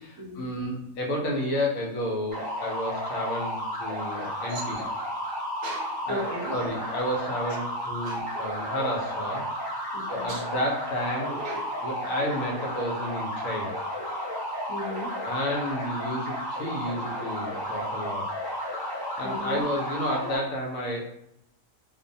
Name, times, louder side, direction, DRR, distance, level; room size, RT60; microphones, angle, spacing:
voice 1, 0.0-4.9 6.1-9.5 10.1-11.4 11.8-13.7 15.2-18.3 19.2-21.0, equal, 70° left, -1 dB, 0.9 m, -31 dB
sound 1, 2.3-20.4, equal, 35° left, 0.4 m, -33 dB
voice 2, 4.5-4.9 5.6-6.5 8.0-8.4 9.9-10.4 11.3-11.7 14.7-15.2 19.2-19.6, equal, 70° right, -1 dB, 0.9 m, -36 dB
2.5 x 2.1 x 2.6 m, 0.77 s
omnidirectional pair, 1.5 m